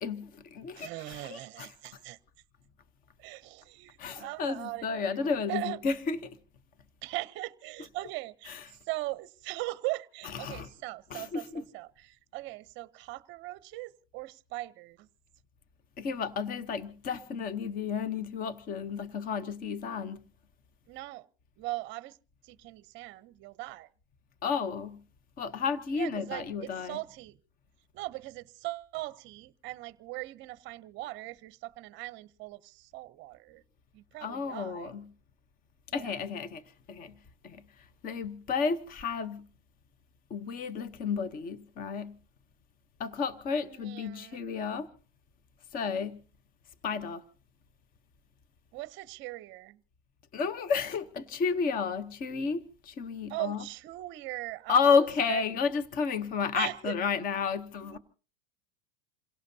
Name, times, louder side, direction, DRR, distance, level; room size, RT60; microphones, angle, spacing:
voice 1, 0.0-1.7 4.0-6.4 8.5-8.6 10.3-10.7 11.1-11.6 16.0-20.2 24.4-25.0 25.4-27.0 34.2-35.1 35.9-36.6 36.9-37.1 37.4-37.6 38.0-39.4 40.3-42.2 43.0-44.9 45.7-46.2 46.8-47.2 50.3-53.6 54.7-58.0, left 5 dB, 25° left, 0.9 m, -31 dB
voice 2, 0.8-2.2 3.2-5.8 7.0-15.1 20.9-21.3 21.6-22.2 22.4-23.9 25.9-27.4 27.9-33.6 33.9-34.9 36.0-36.1 43.6-44.5 48.7-49.8 53.3-55.4 56.5-56.9 57.8-58.0, right 19 dB, 40° right, 0.7 m, -40 dB
27.5 x 17.5 x 2.8 m
supercardioid pair, 140°, 31 cm